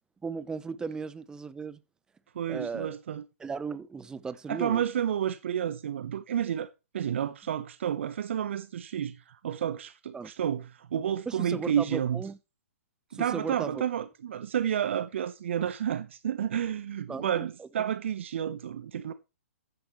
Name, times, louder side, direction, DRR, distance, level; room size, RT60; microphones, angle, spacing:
voice 1, 0.2-1.8 2.5-3.0 3.4-4.8 10.1-10.3 11.3-12.4 13.1-13.8 17.1-17.7, right 5 dB, 10° right, 0.8 m, -36 dB
voice 2, 2.3-3.2 4.5-6.7 6.9-12.2 13.1-19.1, right 9 dB, 55° right, 1.0 m, -30 dB
14.5 x 10.5 x 3.2 m
figure-of-eight pair, 125°, 8 cm